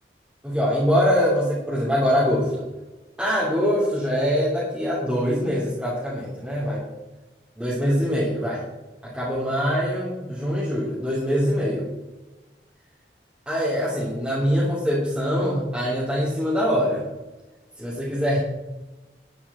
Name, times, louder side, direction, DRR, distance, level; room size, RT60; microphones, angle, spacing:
voice 1, 0.4-2.5 3.2-6.8 7.5-8.6 9.0-11.8 13.5-17.0 17.8-18.4, equal, 5° right, -9 dB, 2.8 m, -23 dB
11.0 x 10.0 x 4.3 m, 1.1 s
head